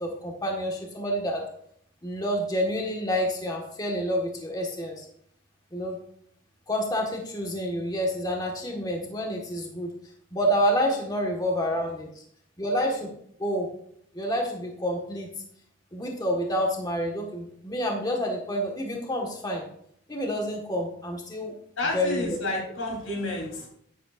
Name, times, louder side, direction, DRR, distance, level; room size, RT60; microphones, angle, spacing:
voice 1, 0.0-1.4 2.0-5.0 5.7-6.0 6.7-9.9 10.3-12.2 12.6-12.9 13.4-13.7 14.1-15.3 15.9-19.6 20.1-21.5 21.9-22.4, equal, 20° left, 0 dB, 1.6 m, -28 dB
voice 2, 21.8-23.7, left 2 dB, 90° left, 0 dB, 3.8 m, -30 dB
11.0 x 10.5 x 2.6 m, 0.66 s
head